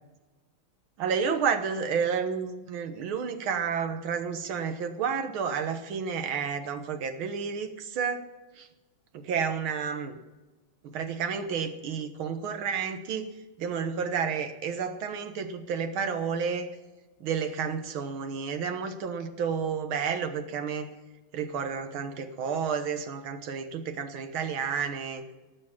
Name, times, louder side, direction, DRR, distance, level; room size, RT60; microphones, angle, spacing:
voice 1, 1.0-8.3 8.6-8.7 9.1-10.2 10.8-13.3 13.6-16.7 17.2-20.9 21.3-25.2, right 6 dB, 85° right, 8 dB, 2.0 m, -31 dB
18.0 x 6.9 x 7.3 m, 1.2 s
omnidirectional pair, 2.2 m